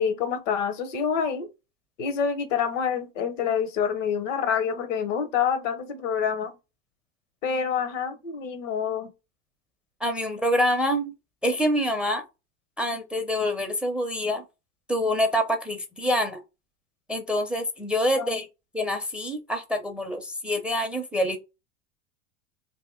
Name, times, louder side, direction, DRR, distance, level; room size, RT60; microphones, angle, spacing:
voice 1, 0.0-1.5 2.0-6.6 7.4-9.1 18.1-18.4, left 7 dB, 75° left, 0.9 m, -27 dB
voice 2, 10.0-11.1 11.4-12.2 12.8-14.4 14.9-16.4 17.1-18.5 18.7-21.4, equal, 5° right, 0.4 m, -26 dB
2.8 x 2.7 x 3.7 m
hypercardioid pair, 100°, 38 cm